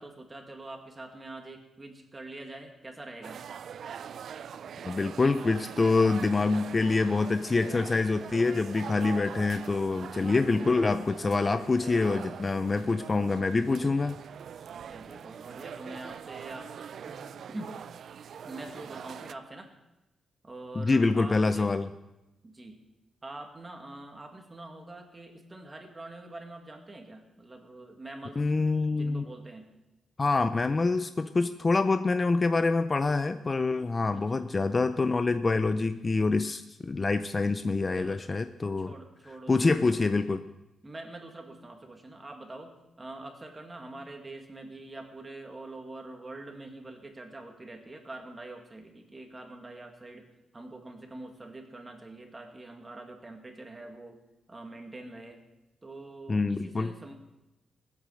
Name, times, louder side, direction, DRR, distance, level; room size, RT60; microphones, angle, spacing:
voice 1, 0.0-3.4 14.9-16.7 17.1-17.8 18.4-19.7 20.4-21.7 22.4-22.8 23.2-28.5 28.9-29.7 34.1-34.5 37.9-38.2 38.8-40.3 40.8-50.3 50.5-54.2 54.5-55.4 55.8-57.1, right 2 dB, 20° right, 3 dB, 2.0 m, -45 dB
sound 1, 3.2-19.3, right 8 dB, 60° right, 0.4 m, -43 dB
voice 2, 4.8-14.2 20.8-21.9 28.4-29.2 30.2-38.9 39.5-40.4 56.3-56.9, left 3 dB, 25° left, 10 dB, 0.5 m, -26 dB
19.5 x 8.3 x 6.5 m, 0.97 s
wide cardioid pair, 145°, 0 cm